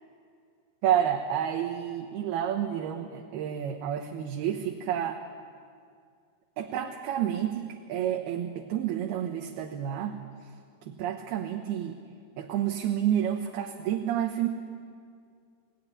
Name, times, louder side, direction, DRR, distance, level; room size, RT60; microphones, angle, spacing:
voice 1, 0.8-5.2 6.6-10.2 10.9-12.0 12.4-14.5, right 10 dB, 75° right, 3 dB, 3.1 m, -29 dB
29.0 x 19.0 x 9.8 m, 2.2 s
omnidirectional pair, 4.7 m